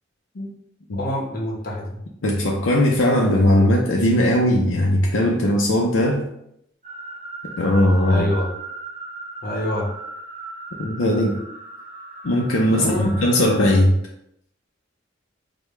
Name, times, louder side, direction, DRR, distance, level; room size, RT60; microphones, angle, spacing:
voice 1, 0.9-2.0 8.1-8.5 9.4-9.9 12.7-13.2, left 1 dB, 50° left, 0 dB, 1.0 m, -26 dB
voice 2, 2.2-6.2 7.6-8.3 10.8-11.3 12.2-13.9, left 1 dB, 80° left, -1 dB, 0.5 m, -18 dB
sound 1, 6.8-13.8, right 2 dB, 40° right, 0.7 m, -37 dB
4.8 x 2.2 x 3.2 m, 0.74 s
head